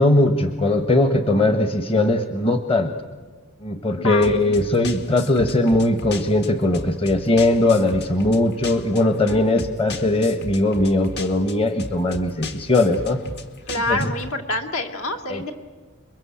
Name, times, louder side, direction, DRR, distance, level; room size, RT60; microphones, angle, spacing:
voice 1, 0.0-2.9 3.6-13.2 13.9-14.0 15.3-15.5, left 2 dB, 25° left, 8 dB, 1.2 m, -19 dB
voice 2, 4.0-4.4 9.3-9.6 13.7-15.5, left 2 dB, 65° left, 5 dB, 2.7 m, -27 dB
sound 1, 4.2-14.3, left 2 dB, 50° left, 1.7 m, -36 dB
27.5 x 23.0 x 8.6 m, 1.3 s
head